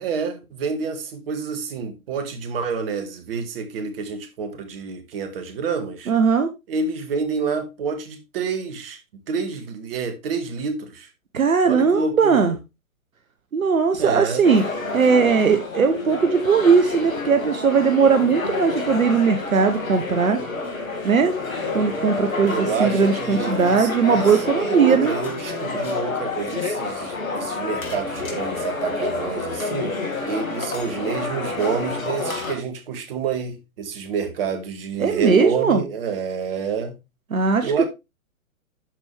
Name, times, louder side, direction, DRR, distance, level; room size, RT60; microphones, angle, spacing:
voice 1, 0.0-6.1 6.7-9.0 9.3-11.1 11.7-12.5 14.0-14.4 22.5-29.9 30.3-36.9 37.6-37.8, right 5 dB, 45° right, 1.9 m, -28 dB
voice 2, 6.1-6.5 11.3-12.6 13.5-14.6 14.9-20.4 21.0-21.3 21.7-25.1 35.0-35.8 37.3-37.8, right 5 dB, 75° right, 1.1 m, -19 dB
sound 1, 14.4-32.6, left 3 dB, 70° left, 2.4 m, -28 dB
12.5 x 4.5 x 3.4 m
figure-of-eight pair, 120°, 42 cm